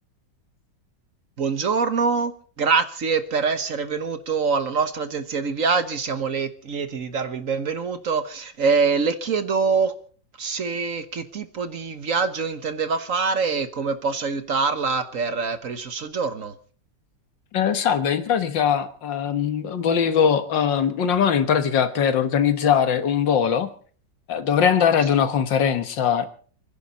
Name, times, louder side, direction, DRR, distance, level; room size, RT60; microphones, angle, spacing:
voice 1, 1.4-2.3 2.6-9.9 10.4-16.5, right 5 dB, 50° right, 1.4 m, -24 dB
voice 2, 17.5-23.7 24.3-26.3, left 7 dB, 85° left, 2.1 m, -21 dB
29.5 x 10.5 x 4.2 m
omnidirectional pair, 1.9 m